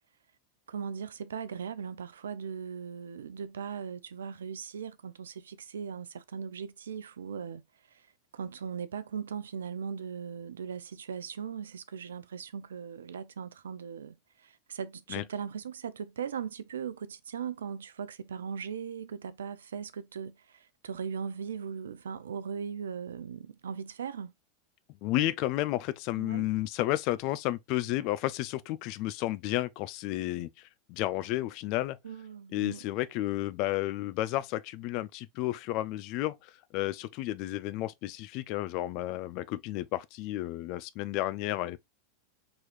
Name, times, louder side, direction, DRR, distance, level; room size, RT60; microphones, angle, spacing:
voice 1, 0.7-7.6 7.9-8.1 8.3-24.3 26.1-26.5 32.0-32.8, right 7 dB, 75° right, 0.4 m, -39 dB
voice 2, 25.0-32.0 32.5-41.8, left 16 dB, 50° left, 0.4 m, -32 dB
4.8 x 3.0 x 2.4 m
figure-of-eight pair, 90°, 0 cm